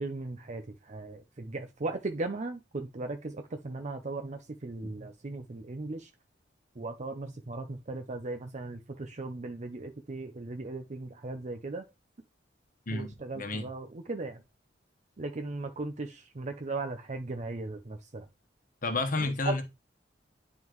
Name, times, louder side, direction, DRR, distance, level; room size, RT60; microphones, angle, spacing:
voice 1, 0.0-6.1 6.8-11.8 12.9-14.4 15.2-18.3, right 2 dB, 40° right, 0.6 m, -37 dB
voice 2, 12.9-13.7 18.8-19.6, left 2 dB, 50° left, 1.2 m, -31 dB
9.9 x 3.7 x 3.1 m
head